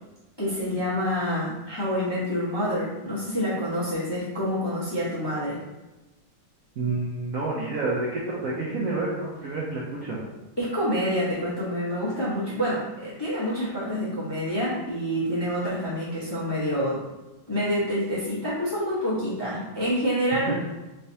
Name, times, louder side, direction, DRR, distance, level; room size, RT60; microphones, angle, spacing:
voice 1, 0.4-5.6 10.6-17.0 17.5-20.6, equal, 30° left, -10 dB, 0.5 m, -27 dB
voice 2, 6.8-10.2 20.5-20.6, right 3 dB, 85° right, -5 dB, 0.7 m, -29 dB
3.4 x 3.2 x 2.7 m, 1.1 s
omnidirectional pair, 2.2 m